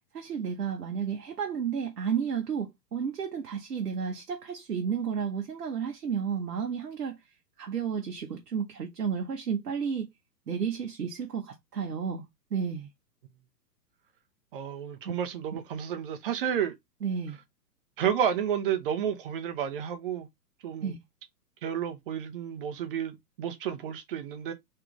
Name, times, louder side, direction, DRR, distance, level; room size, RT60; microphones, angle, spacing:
voice 1, 0.1-7.2 7.6-10.1 10.5-12.2 12.5-12.9 15.0-15.1 15.5-15.6 17.0-17.4 20.8-21.0, right 7 dB, 65° right, 0.9 m, -32 dB
voice 2, 14.5-16.7 18.0-20.3 20.6-20.9 21.6-24.5, right 9 dB, 35° right, 0.8 m, -31 dB
3.5 x 3.3 x 3.0 m
figure-of-eight pair, 110°, 49 cm